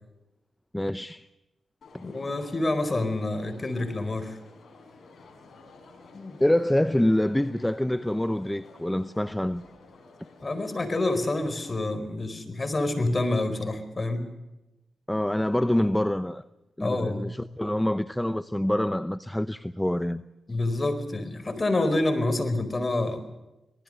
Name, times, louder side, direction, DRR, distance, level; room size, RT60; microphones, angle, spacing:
voice 1, 0.7-1.3 1.9-2.0 6.4-9.6 15.1-16.4 16.8-20.2, left 1 dB, 10° left, 0.7 m, -26 dB
Crowd, 1.8-11.7, left 3 dB, 65° left, 6.3 m, -52 dB
voice 2, 2.0-4.4 6.1-6.4 10.4-14.3 16.8-17.3 20.5-23.2, left 2 dB, 30° left, 4.6 m, -27 dB
26.5 x 19.5 x 6.6 m
cardioid pair, 75°, 0 cm